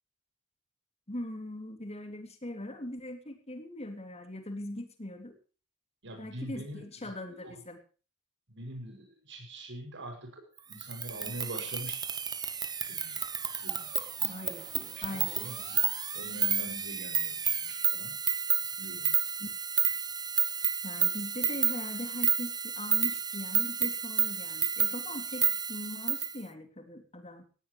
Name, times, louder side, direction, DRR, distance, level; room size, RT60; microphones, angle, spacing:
voice 1, 1.1-5.3 6.2-7.8 14.3-14.7 15.0-15.4 19.4-19.5 20.8-27.4, left 1 dB, 30° left, 7 dB, 3.2 m, -41 dB
voice 2, 6.0-7.6 8.5-12.0 12.9-13.3 13.5-13.9 14.2-15.8 16.1-18.2 18.6-19.2, right 1 dB, 55° right, 4 dB, 7.2 m, -44 dB
sound 1, 10.7-26.4, right 7 dB, 20° right, 1.0 m, -31 dB
18.0 x 17.0 x 3.3 m, 0.37 s
head